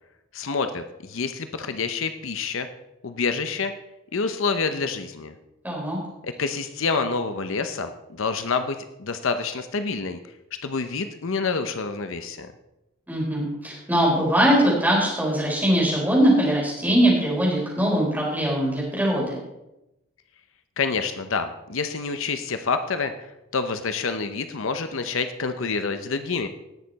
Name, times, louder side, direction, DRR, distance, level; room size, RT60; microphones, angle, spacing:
voice 1, 0.3-2.7 3.0-3.7 4.1-5.3 6.2-10.2 10.6-12.5 20.8-26.5, left 4 dB, 70° left, 9 dB, 0.7 m, -27 dB
voice 2, 5.6-6.0 13.1-19.4, right 1 dB, 10° right, -4 dB, 4.1 m, -21 dB
18.0 x 6.6 x 4.1 m, 0.92 s
head